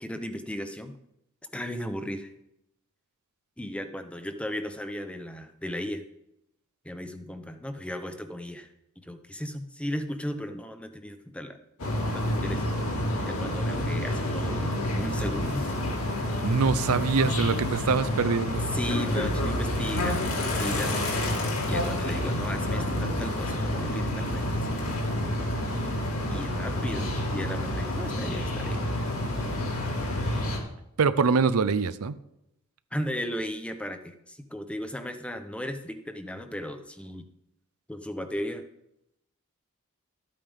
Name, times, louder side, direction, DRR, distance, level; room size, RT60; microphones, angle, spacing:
voice 1, 0.0-0.9 1.5-2.3 3.6-6.0 6.8-8.7 9.0-11.6 12.1-12.6 13.3-15.7 18.7-21.1 21.7-24.8 26.3-28.9 32.9-37.3 37.9-38.6, equal, 5° left, 8 dB, 0.7 m, -35 dB
sound 1, 11.8-30.6, left 1 dB, 70° left, 2.5 m, -29 dB
voice 2, 16.4-18.7 31.0-32.1, right 5 dB, 75° right, 14 dB, 0.6 m, -24 dB
13.0 x 8.7 x 3.5 m, 0.81 s
head